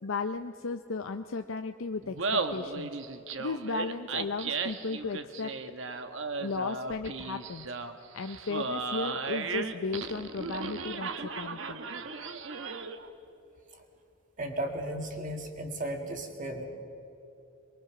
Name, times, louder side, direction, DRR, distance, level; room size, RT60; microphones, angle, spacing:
voice 1, 0.0-3.0 3.4-5.5 6.4-7.7 8.1-11.8, left 4 dB, 85° left, 6 dB, 0.6 m, -35 dB
Laughter, 2.0-13.1, right 4 dB, 70° right, 1.1 m, -35 dB
voice 2, 14.4-16.6, right 1 dB, 40° right, 3 dB, 2.2 m, -35 dB
24.0 x 22.0 x 6.0 m, 2.8 s
head